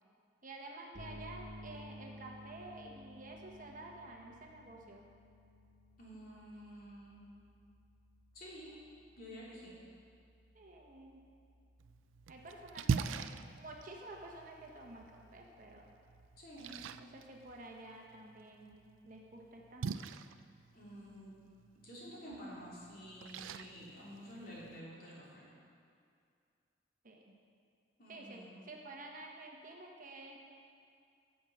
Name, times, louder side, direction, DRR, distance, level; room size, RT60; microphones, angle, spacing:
voice 1, 0.4-5.0 10.5-11.2 12.3-15.9 17.0-20.1 27.0-27.2 28.1-30.4, right 2 dB, 45° right, 1 dB, 1.0 m, -51 dB
sound 1, 0.9-16.9, equal, 60° right, 1.4 m, -57 dB
voice 2, 6.0-7.2 8.3-8.7 9.2-9.7 16.4-16.8 20.7-21.3 21.7-25.5 28.0-28.6, equal, 50° left, -7 dB, 3.0 m, -50 dB
Splash splatter, 11.8-24.8, right 6 dB, 90° right, 0.4 m, -43 dB
9.9 x 7.4 x 6.1 m, 2.4 s
head